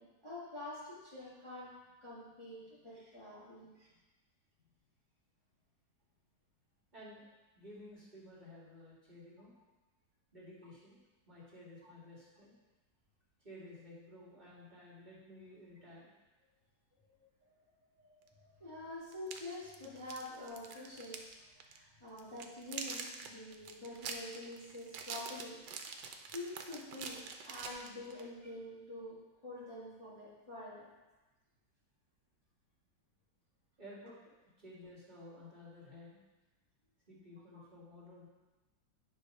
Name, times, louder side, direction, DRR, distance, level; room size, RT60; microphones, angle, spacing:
voice 1, 0.0-3.9 11.8-11.9 17.2-17.5 18.0-25.6 26.3-30.9 37.5-37.6, left 1 dB, 15° left, -9 dB, 1.6 m, -47 dB
voice 2, 6.9-7.2 7.5-9.5 10.3-12.6 13.4-16.1 18.3-18.5 33.8-34.2 34.6-36.2 37.1-38.3, left 1 dB, 25° right, -8 dB, 2.1 m, -54 dB
sound 1, 18.3-18.4 19.1-21.3 21.6-21.8 22.2-28.3, right 5 dB, 75° right, 1.3 m, -45 dB
9.5 x 3.7 x 5.3 m, 1.1 s
omnidirectional pair, 2.0 m